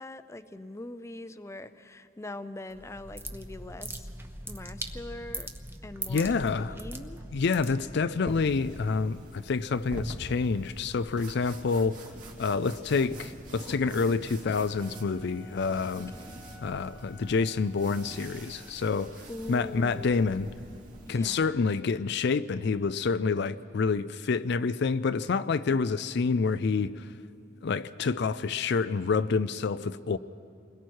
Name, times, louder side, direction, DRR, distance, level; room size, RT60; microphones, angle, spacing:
voice 1, 0.0-4.1 4.4-5.5 5.8-7.2 16.0-16.4 19.3-20.3 21.1-21.7, left 1 dB, 15° left, 0.6 m, -42 dB
sound 1, 2.7-8.1, right 2 dB, 10° right, 0.9 m, -40 dB
voice 2, 6.1-6.8 7.3-12.0 12.4-16.1 16.6-19.1 19.5-20.5 21.1-27.1 27.6-30.2, left 4 dB, 60° left, 0.4 m, -28 dB
sound 2, 8.3-21.2, equal, 45° right, 3.0 m, -44 dB
Wind instrument woodwind instrument, 14.6-18.9, equal, 85° right, 2.0 m, -55 dB
29.0 x 21.0 x 4.7 m
head